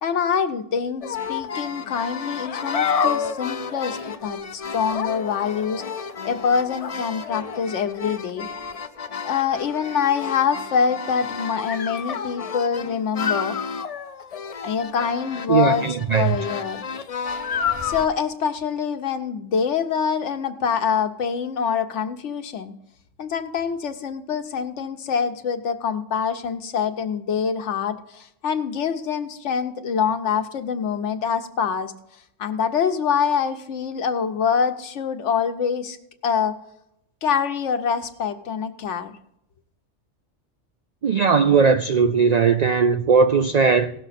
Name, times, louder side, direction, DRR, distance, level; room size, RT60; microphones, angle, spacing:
voice 1, 0.0-8.5 9.2-13.6 14.6-15.8 16.1-16.8 17.8-22.8 23.2-31.9 32.4-36.0 36.2-36.6 37.2-39.2, left 6 dB, 75° left, 1.1 m, -25 dB
sound 1, 1.0-18.1, left 6 dB, 55° left, 0.4 m, -30 dB
voice 2, 15.5-16.4 41.0-43.9, right 5 dB, 90° right, 0.3 m, -18 dB
17.0 x 6.6 x 4.2 m
omnidirectional pair, 1.3 m